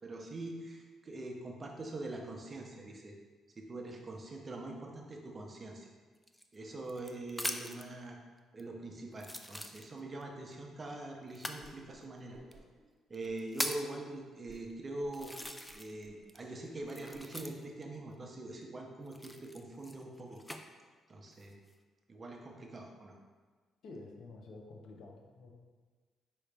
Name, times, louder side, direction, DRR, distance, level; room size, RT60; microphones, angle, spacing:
voice 1, 0.0-3.2 3.6-5.9 6.5-8.2 8.5-12.4 13.1-15.3 15.7-20.4 21.1-21.6 22.1-23.1, right 2 dB, 35° right, 1 dB, 0.7 m, -43 dB
sound 1, 6.2-7.9 8.6-8.7 9.2-10.2 11.3-11.6 12.5-12.6 13.1-13.9 14.6-14.7 15.1-16.0 16.3-17.8 19.1-20.6 21.3-21.7, left 1 dB, 5° left, 0.3 m, -41 dB
Whoosh swoosh swish, 11.6-12.0 12.3-12.8 13.2-13.7 14.1-14.2 14.5-14.7 15.0-17.2, right 3 dB, 55° right, 0.9 m, -58 dB
voice 2, 23.8-25.5, left 2 dB, 70° left, 0 dB, 0.7 m, -50 dB
4.8 x 3.0 x 3.4 m, 1.4 s
cardioid pair, 90°, 0 cm